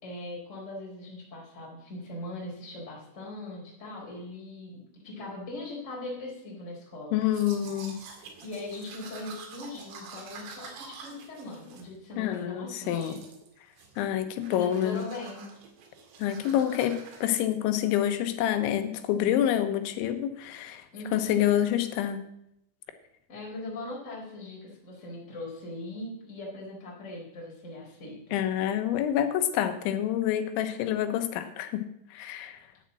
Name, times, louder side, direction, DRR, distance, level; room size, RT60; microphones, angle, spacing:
voice 1, 0.0-7.2 8.4-13.2 14.5-15.5 20.9-21.5 23.3-28.4, left 2 dB, 15° left, -3 dB, 3.8 m, -40 dB
voice 2, 7.1-8.0 12.2-13.2 14.0-15.0 16.2-20.9 21.1-22.2 28.3-32.6, left 11 dB, 75° left, 8 dB, 3.1 m, -27 dB
Domestic sounds home sounds, 7.2-12.4 12.8-13.5 13.8-14.1 14.4-17.3, right 5 dB, 90° right, 4.7 m, -47 dB
10.5 x 8.1 x 7.5 m, 0.78 s
omnidirectional pair, 5.7 m